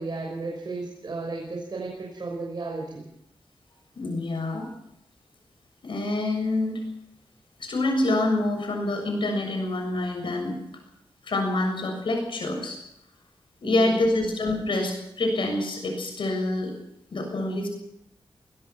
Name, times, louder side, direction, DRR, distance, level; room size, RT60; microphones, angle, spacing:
voice 1, 0.0-3.1 13.6-14.0, right 3 dB, 55° right, -1 dB, 5.9 m, -34 dB
voice 2, 4.0-4.7 5.8-6.8 7.6-10.6 11.2-12.8 13.6-16.7 17.1-17.7, left 2 dB, 70° left, 3 dB, 7.1 m, -26 dB
22.5 x 21.0 x 6.0 m, 0.79 s
wide cardioid pair, 130°, 9 cm